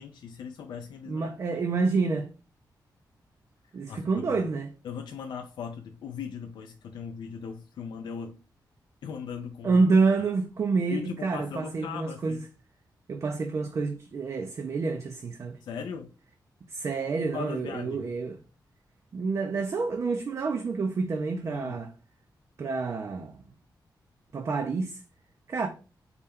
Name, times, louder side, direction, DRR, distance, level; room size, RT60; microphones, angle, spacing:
voice 1, 0.0-1.3 3.9-4.4 4.8-8.4 9.0-9.8 10.9-12.4 15.6-16.1 17.3-18.1 21.5-21.8, left 6 dB, 85° left, 0.4 m, -39 dB
voice 2, 1.1-2.3 3.7-4.7 9.6-12.4 13.1-15.6 16.7-18.4 19.1-21.9 22.6-23.4 24.3-25.0 25.5-25.7, right 4 dB, 40° right, 0.4 m, -28 dB
4.2 x 2.2 x 3.4 m
wide cardioid pair, 155°, 8 cm